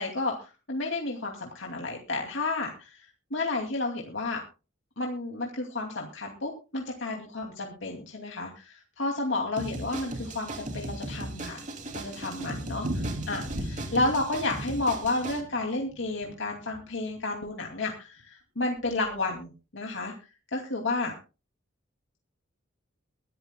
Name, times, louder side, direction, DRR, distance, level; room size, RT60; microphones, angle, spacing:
voice 1, 0.0-2.9 3.3-4.4 5.0-11.6 11.9-20.1 20.5-21.1, left 2 dB, 65° left, 1 dB, 2.5 m, -31 dB
sound 1, 9.6-15.4, right 2 dB, 40° right, 2.7 m, -38 dB
Thunder, 11.6-17.2 17.5-17.6 17.9-18.0 18.2-18.3 18.9-19.2, right 1 dB, 75° right, 2.8 m, -39 dB
22.5 x 12.5 x 2.3 m, 0.32 s
head